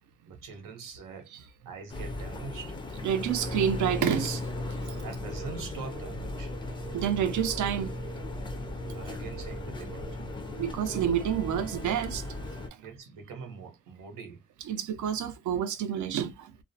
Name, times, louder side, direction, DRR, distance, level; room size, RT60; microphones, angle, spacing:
voice 1, 0.3-2.8 4.9-6.6 8.8-10.2 12.6-14.5, right 4 dB, 85° right, 0.9 m, -43 dB
sound 1, 1.9-12.7, left 2 dB, 15° left, 0.3 m, -37 dB
voice 2, 3.0-4.4 6.9-8.0 10.6-12.2 14.7-16.5, right 9 dB, 65° right, 0.5 m, -28 dB
sound 2, 3.3-11.6, right 9 dB, 20° right, 0.8 m, -48 dB
2.4 x 2.0 x 2.6 m
cardioid pair, 135°, 32 cm